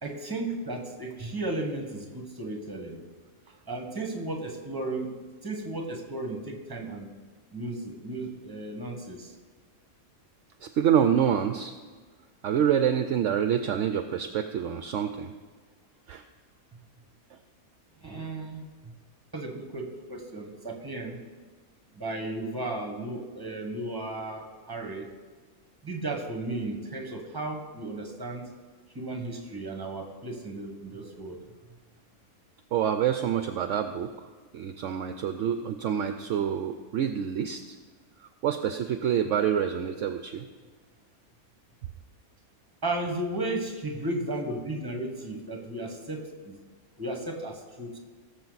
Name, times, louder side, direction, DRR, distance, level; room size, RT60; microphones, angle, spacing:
voice 1, 0.0-3.0 3.7-5.1 5.4-7.1 7.5-9.3 18.0-18.9 19.3-21.2 21.9-25.1 25.8-28.4 28.9-31.4 42.8-46.6 47.0-48.0, right 2 dB, 15° right, 2 dB, 1.4 m, -34 dB
voice 2, 10.6-11.7 12.4-15.3 16.1-16.2 32.7-34.1 34.5-37.8 38.4-40.5, right 9 dB, 65° right, 8 dB, 0.8 m, -27 dB
18.0 x 7.0 x 4.1 m, 1.5 s
omnidirectional pair, 1.5 m